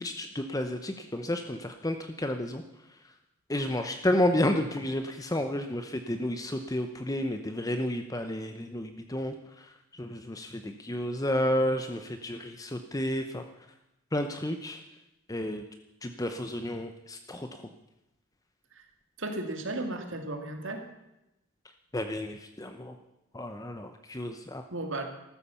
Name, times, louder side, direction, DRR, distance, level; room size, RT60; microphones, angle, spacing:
voice 1, 0.0-2.6 3.5-13.4 14.1-14.8 15.3-15.7 16.0-17.6 21.9-23.0 23.3-24.6, left 1 dB, 15° left, 7 dB, 0.7 m, -31 dB
voice 2, 19.2-20.8 24.7-25.0, right 2 dB, 60° right, 5 dB, 2.3 m, -34 dB
14.5 x 13.0 x 7.0 m, 0.92 s
head